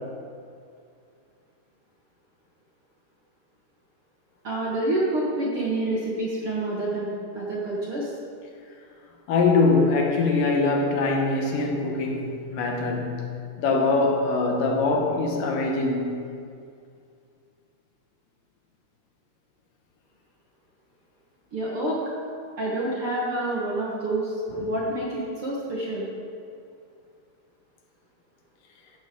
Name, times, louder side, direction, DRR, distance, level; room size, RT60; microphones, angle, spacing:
voice 1, 4.4-8.1 21.5-22.0 22.6-24.3 24.6-26.1, right 1 dB, 55° right, 1.6 m, -28 dB
voice 2, 9.3-16.2, left 3 dB, 70° left, 2.5 m, -23 dB
14.5 x 11.5 x 3.7 m
omnidirectional pair, 4.3 m